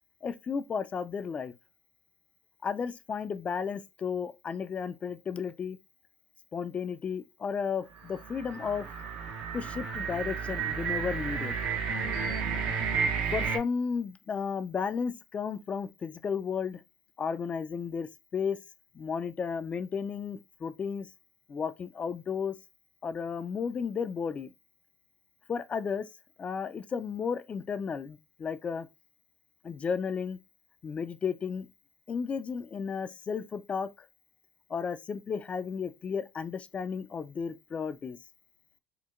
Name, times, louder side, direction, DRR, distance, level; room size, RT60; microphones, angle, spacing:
voice 1, 0.2-1.5 2.6-5.8 6.5-8.9 9.5-11.6 13.3-16.8 17.2-18.6 18.9-21.1 21.5-22.6 23.0-24.5 25.5-26.1 26.4-28.9 29.6-30.4 30.8-31.7 32.1-33.9 34.7-38.2, left 6 dB, 35° left, 0.4 m, -33 dB
sound 1, 8.0-13.6, right 6 dB, 70° right, 0.8 m, -32 dB
4.3 x 2.2 x 2.4 m
supercardioid pair, 85°, 4 cm